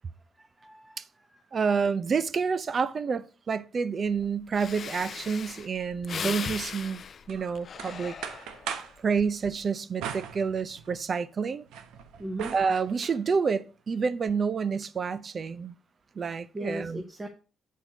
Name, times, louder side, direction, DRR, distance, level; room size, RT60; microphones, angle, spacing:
voice 1, 0.4-1.0 12.2-12.5 16.5-17.3, right 1 dB, 15° right, 1.2 m, -37 dB
voice 2, 1.5-7.0 7.3-8.1 9.0-11.6 12.5-15.7 16.2-17.0, right 5 dB, 45° right, 0.6 m, -28 dB
Breathing, 4.2-4.3 4.5-8.8 9.3-9.6, left 6 dB, 50° left, 0.5 m, -38 dB
sound 1, 7.3-9.0 10.0-11.1 11.5-13.2, right 8 dB, 90° right, 0.9 m, -39 dB
8.3 x 4.5 x 5.3 m
cardioid pair, 90°, 0 cm